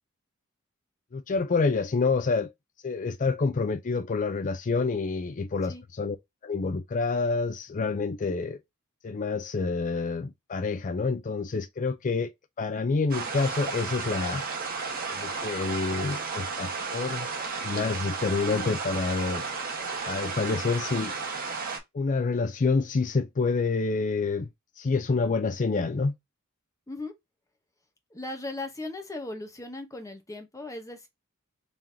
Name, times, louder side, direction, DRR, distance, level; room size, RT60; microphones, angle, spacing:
voice 1, 1.1-2.5 2.8-6.2 6.4-8.6 9.0-12.3 12.6-14.4 15.1-17.3 17.6-19.4 20.1-21.1 21.9-24.5 24.8-26.2, left 4 dB, 40° left, 0.4 m, -27 dB
sound 1, 13.1-21.8, right 4 dB, 45° right, 1.3 m, -33 dB
voice 2, 28.1-31.1, left 2 dB, 15° left, 1.0 m, -37 dB
3.8 x 3.4 x 2.7 m
head